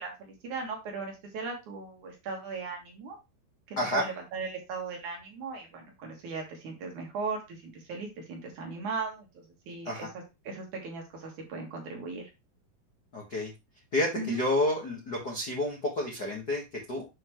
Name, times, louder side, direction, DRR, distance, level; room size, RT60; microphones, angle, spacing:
voice 1, 0.0-3.2 3.9-9.3 9.7-9.9 10.5-12.3 14.2-14.4, right 4 dB, 55° right, 1 dB, 2.8 m, -37 dB
voice 2, 3.8-4.1 9.8-10.1 13.1-13.5 13.9-17.0, left 1 dB, 80° left, -2 dB, 0.9 m, -30 dB
7.6 x 5.9 x 3.1 m, 0.24 s
omnidirectional pair, 4.8 m